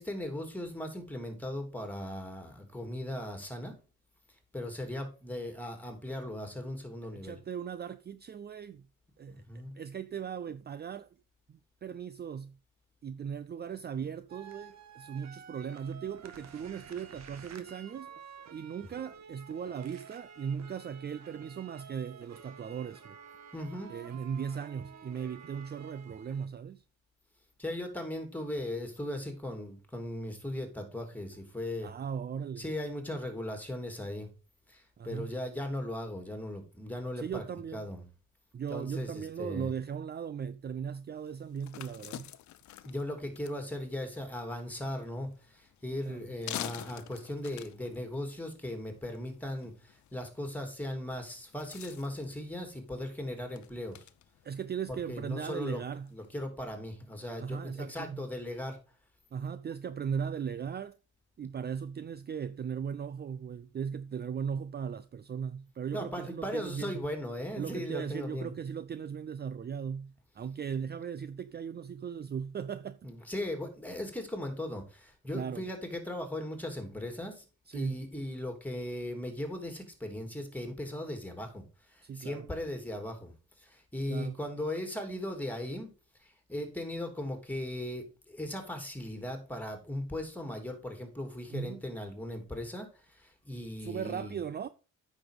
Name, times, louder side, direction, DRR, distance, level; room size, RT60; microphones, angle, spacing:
voice 1, 0.0-3.8 4.5-7.4 9.3-9.7 23.5-23.9 27.6-31.9 32.6-34.3 34.7-37.4 37.7-38.0 38.7-39.7 42.8-54.0 55.1-55.8 56.1-58.8 65.9-68.5 73.0-77.4 77.7-85.9 86.2-94.4, left 1 dB, 5° left, 3.1 m, -38 dB
voice 2, 7.0-8.9 9.2-11.1 11.5-12.6 13.0-18.1 18.5-23.2 23.9-26.8 31.8-32.7 35.0-35.3 37.2-37.8 38.5-42.3 46.1-46.3 54.4-56.1 57.4-58.3 59.3-61.0 61.4-67.1 67.6-73.0 75.3-75.7 77.7-78.0 82.0-82.5 84.1-84.4 91.5-91.8 93.8-94.7, right 7 dB, 35° right, 0.5 m, -38 dB
sound 1, 14.3-26.5, right 6 dB, 60° right, 1.6 m, -51 dB
sound 2, 41.2-56.4, left 13 dB, 70° left, 0.8 m, -49 dB
8.9 x 6.2 x 5.0 m
cardioid pair, 90°, 30 cm